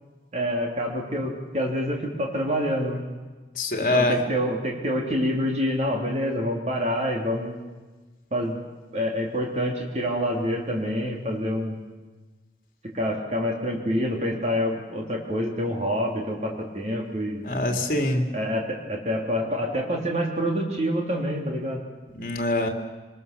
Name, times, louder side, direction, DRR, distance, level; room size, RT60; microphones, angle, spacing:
voice 1, 0.3-3.0 3.8-7.6 8.3-8.6 8.9-11.8 12.9-17.5 18.3-21.8, equal, 40° right, 0 dB, 3.4 m, -27 dB
voice 2, 3.5-4.2 17.4-18.3 22.1-22.7, left 2 dB, 50° left, 3 dB, 2.8 m, -24 dB
26.0 x 20.5 x 6.9 m, 1.3 s
head